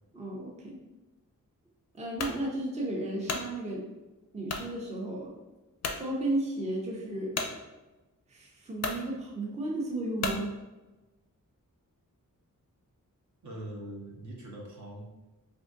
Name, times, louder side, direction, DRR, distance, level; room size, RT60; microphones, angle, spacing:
voice 1, 0.1-0.8 1.9-3.8 4.3-5.3 6.0-7.3 8.3-10.5, right 1 dB, 20° right, -2 dB, 0.5 m, -34 dB
sound 1, 2.2-2.4 3.0-3.5 4.5-4.7 5.3-5.4 5.8-6.0 7.4-7.5 8.3-8.4 8.8-9.0 10.2-10.5, left 4 dB, 50° left, 0.4 m, -33 dB
voice 2, 13.4-15.1, right 1 dB, 60° right, -2 dB, 0.8 m, -42 dB
3.5 x 2.6 x 2.5 m, 1.1 s
wide cardioid pair, 105°, 34 cm